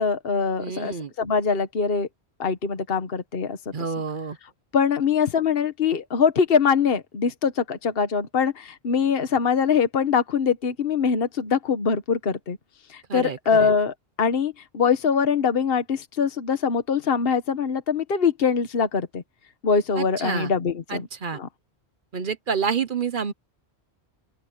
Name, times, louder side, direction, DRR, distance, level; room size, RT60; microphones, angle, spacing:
voice 1, 0.0-2.1 2.4-3.6 4.7-12.6 12.9-19.2 19.6-21.1 21.3-21.5, left 6 dB, 60° left, 1.4 m, -23 dB
voice 2, 0.6-1.1 3.7-4.4 13.1-13.7 20.0-20.5 20.9-21.4 22.1-23.3, right 6 dB, 50° right, 1.0 m, -28 dB
open air
omnidirectional pair, 1.1 m